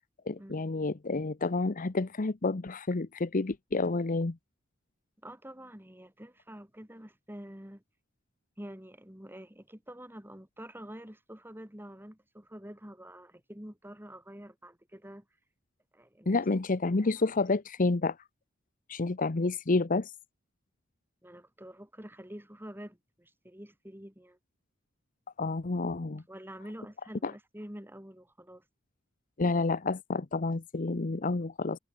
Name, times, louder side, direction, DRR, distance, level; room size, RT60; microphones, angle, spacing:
voice 1, 0.3-4.4 16.3-18.2 18.9-20.1 25.4-26.2 27.2-27.3 29.4-31.8, left 3 dB, 45° left, 0.8 m, -29 dB
voice 2, 5.2-7.8 8.6-15.2 15.9-16.4 16.9-17.0 21.2-24.4 26.3-28.6, equal, 10° right, 4.8 m, -47 dB
head